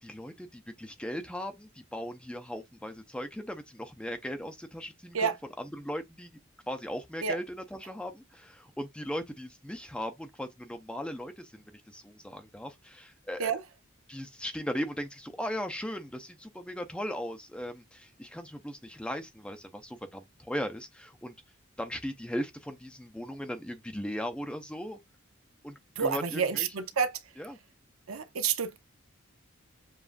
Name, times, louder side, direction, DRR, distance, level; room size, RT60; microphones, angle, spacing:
voice 1, 0.0-6.4 6.7-13.5 14.1-21.3 21.8-25.0 25.6-26.7 27.4-27.6, equal, 5° left, 0.5 m, -38 dB
voice 2, 26.0-27.1 28.1-28.8, right 6 dB, 80° right, 0.7 m, -29 dB
7.0 x 2.4 x 2.5 m
head